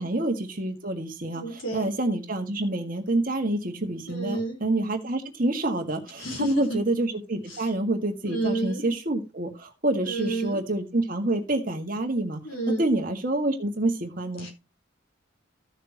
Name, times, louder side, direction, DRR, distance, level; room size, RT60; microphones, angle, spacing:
voice 1, 0.0-12.4 12.7-14.5, right 2 dB, 45° right, 4 dB, 1.7 m, -27 dB
voice 2, 1.3-1.9 4.1-4.6 6.2-6.8 7.5-7.7 8.2-8.9 10.0-10.7 12.4-12.9 14.4-14.5, right 2 dB, 80° left, 2 dB, 4.1 m, -31 dB
15.0 x 6.7 x 2.9 m, 0.26 s
head